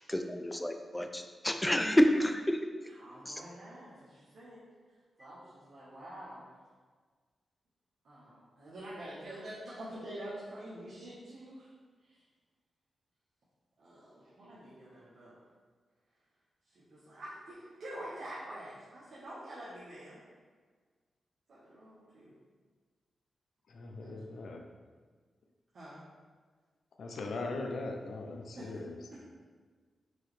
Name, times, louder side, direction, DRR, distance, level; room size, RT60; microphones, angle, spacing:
voice 1, 0.1-2.6 3.3-3.4, equal, 10° left, 5 dB, 0.4 m, -28 dB
voice 2, 2.9-4.6 5.2-6.5 8.0-11.7 12.1-12.2 13.8-15.4 16.7-20.2 21.5-22.3 24.0-24.2 25.7-26.0 28.5-28.7 29.1-29.3, right 1 dB, 70° right, -10 dB, 1.1 m, -47 dB
voice 3, 23.7-24.6 27.0-29.0, left 3 dB, 75° left, 2 dB, 0.5 m, -39 dB
4.6 x 3.0 x 3.2 m, 1.5 s
cardioid pair, 80°, 0 cm